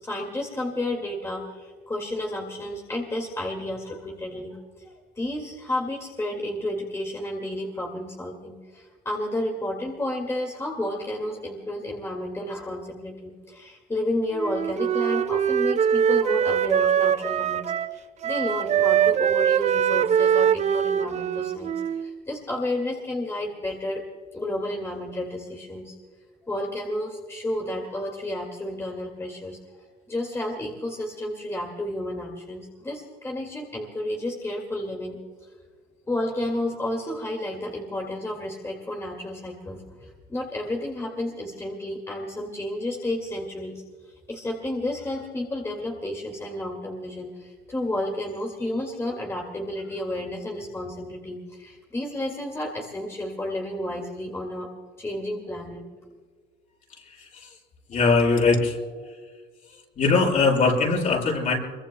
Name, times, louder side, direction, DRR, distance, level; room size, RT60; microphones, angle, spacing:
voice 1, 0.0-17.6 17.9-24.0 24.3-25.9 26.4-29.8 30.1-35.2 36.1-43.8 44.3-54.7 55.0-55.8, left 1 dB, 15° left, 1 dB, 2.1 m, -31 dB
Wind instrument woodwind instrument, 14.3-18.0 18.2-22.2, right 9 dB, 45° right, 0.6 m, -23 dB
voice 2, 57.9-58.8 60.0-61.6, left 4 dB, 50° left, -1 dB, 6.2 m, -20 dB
26.5 x 23.0 x 2.2 m, 1.5 s
cardioid pair, 110°, 17 cm